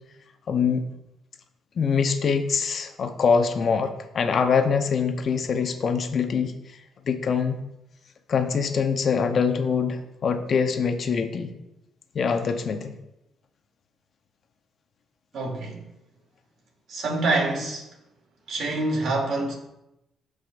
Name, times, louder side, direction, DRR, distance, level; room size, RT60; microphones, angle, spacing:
voice 1, 0.5-0.8 1.8-6.5 7.0-7.6 8.3-11.5 12.1-12.9, left 6 dB, 50° left, 7 dB, 0.8 m, -24 dB
voice 2, 15.3-15.8 16.9-17.9 18.5-19.5, right 2 dB, 65° right, -2 dB, 2.7 m, -26 dB
13.0 x 5.0 x 2.5 m, 0.89 s
cardioid pair, 90°, 0 cm